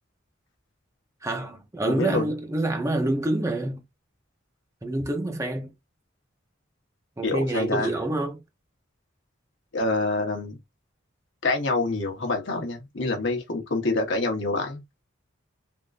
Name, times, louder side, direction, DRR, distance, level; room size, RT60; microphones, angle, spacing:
voice 1, 1.2-3.8 4.8-5.7 7.2-8.4, right 1 dB, 15° right, 0.5 m, -27 dB
voice 2, 1.9-2.3 7.2-7.9 9.7-10.6 11.4-14.8, left 2 dB, 65° left, 1.0 m, -26 dB
3.5 x 2.5 x 2.4 m
head